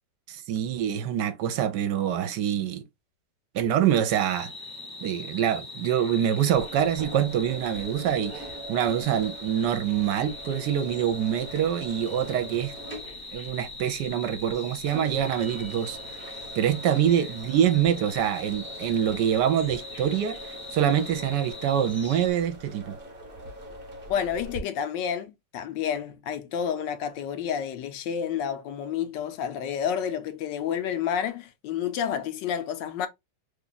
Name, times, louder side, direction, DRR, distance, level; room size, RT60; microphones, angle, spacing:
voice 1, 0.3-2.8 3.5-4.5 5.0-12.7 13.3-16.2 16.5-23.0, right 9 dB, 75° right, 1.1 m, -25 dB
sound 1, 4.1-22.3, left 2 dB, 25° left, 0.5 m, -41 dB
sound 2, 6.5-24.6, right 1 dB, 40° right, 0.8 m, -43 dB
voice 2, 24.1-33.1, left 8 dB, 80° left, 1.3 m, -30 dB
3.2 x 2.3 x 3.8 m
omnidirectional pair, 1.9 m